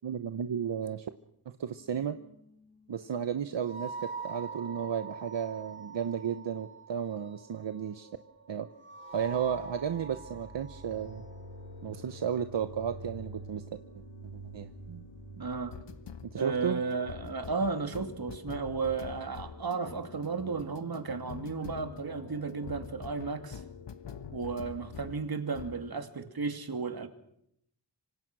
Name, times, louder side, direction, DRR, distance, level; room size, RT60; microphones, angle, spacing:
voice 1, 0.0-1.1 1.4-2.2 2.9-8.1 8.5-8.7 9.1-11.2 11.8-13.6 13.9-14.0 14.3-14.7 16.2-16.8, right 8 dB, 75° right, 10 dB, 1.1 m, -33 dB
sound 1, 1.6-16.2, right 4 dB, 25° right, 6.3 m, -46 dB
sound 2, 10.9-25.2 25.5-25.8, left 6 dB, 75° left, 1.4 m, -46 dB
voice 2, 15.4-15.7 16.3-23.6 24.3-27.1, right 4 dB, 55° right, 7 dB, 2.8 m, -34 dB
26.5 x 25.5 x 6.2 m, 0.74 s
wide cardioid pair, 110°, 43 cm